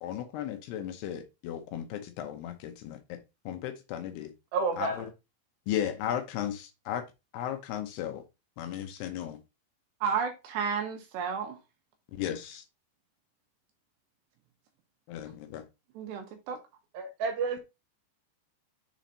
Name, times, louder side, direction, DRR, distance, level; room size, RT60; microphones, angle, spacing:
voice 1, 0.0-3.2 3.5-4.3 4.8-4.9 5.7-7.0 7.3-8.2 8.6-9.4 12.1-12.6 15.1-15.6, left 10 dB, 80° left, 2.5 m, -35 dB
voice 2, 4.5-5.1 16.9-17.6, right 4 dB, 60° right, 3.2 m, -30 dB
voice 3, 10.0-11.6 15.9-16.6, right 6 dB, 75° right, 2.9 m, -32 dB
7.6 x 4.1 x 3.9 m
omnidirectional pair, 5.5 m